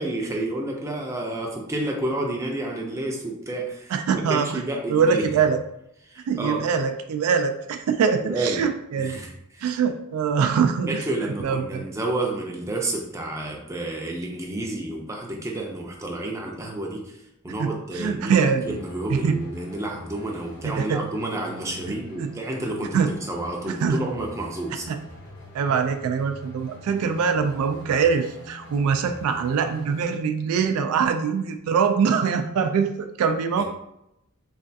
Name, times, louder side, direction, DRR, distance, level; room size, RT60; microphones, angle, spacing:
voice 1, 0.0-3.9 4.3-5.2 6.1-6.6 8.2-8.7 9.0-9.8 10.9-17.2 17.4-24.9 33.6-33.7, right 1 dB, 15° right, 0 dB, 0.4 m, -30 dB
voice 2, 3.9-4.6 4.9-5.6 6.3-9.2 9.6-11.0 11.4-11.8 17.6-18.8 19.1-19.4 20.6-21.0 22.2-22.3 22.9-23.1 23.7-24.0 24.9-25.0 25.5-33.6, right 6 dB, 75° right, 11 dB, 0.3 m, -23 dB
sound 1, 18.6-30.0, left 1 dB, 55° left, 0.8 m, -44 dB
3.3 x 2.3 x 2.6 m, 0.82 s
head